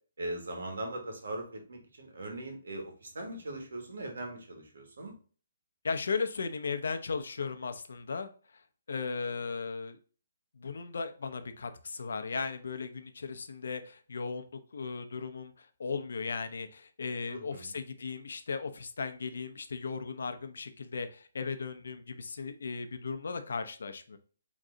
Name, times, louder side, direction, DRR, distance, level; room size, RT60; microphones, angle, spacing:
voice 1, 0.2-5.1 17.3-17.7, right 1 dB, 80° right, 3 dB, 1.5 m, -40 dB
voice 2, 5.8-8.3 8.9-10.0 10.6-14.5 14.7-24.2, left 4 dB, 75° left, 8 dB, 0.6 m, -36 dB
3.7 x 3.1 x 3.8 m, 0.40 s
hypercardioid pair, 170°, 0 cm